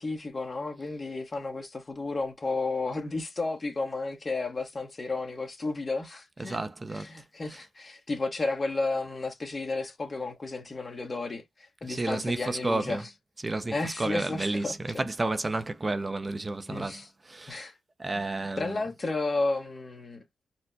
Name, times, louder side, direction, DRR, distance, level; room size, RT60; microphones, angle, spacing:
voice 1, 0.0-6.6 6.9-13.0 13.7-15.0 16.7-17.1 17.5-17.7 18.1-18.2 18.6-20.2, left 3 dB, 40° left, 1.1 m, -32 dB
voice 2, 6.4-7.1 7.5-7.6 11.8-13.0 13.4-17.7 18.0-18.8, right 2 dB, 30° right, 0.5 m, -31 dB
4.3 x 2.1 x 2.6 m
cardioid pair, 65°, 0 cm